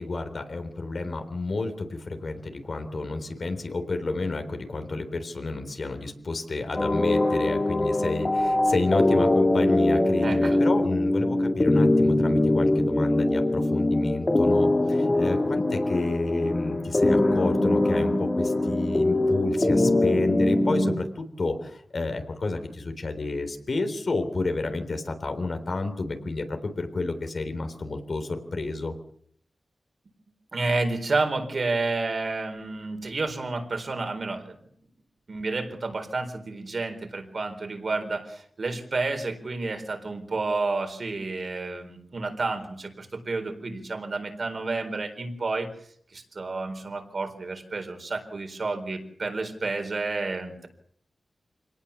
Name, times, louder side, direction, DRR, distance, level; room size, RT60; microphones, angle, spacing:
voice 1, 0.0-28.9, left 3 dB, 55° left, 7 dB, 3.7 m, -30 dB
sound 1, 6.8-21.0, left 1 dB, 25° left, 3.5 m, -22 dB
voice 2, 10.2-10.6 30.5-34.6 35.3-45.7 46.1-50.7, right 3 dB, 50° right, 6 dB, 4.2 m, -30 dB
26.5 x 18.5 x 7.2 m, 0.64 s
wide cardioid pair, 115°, 0 cm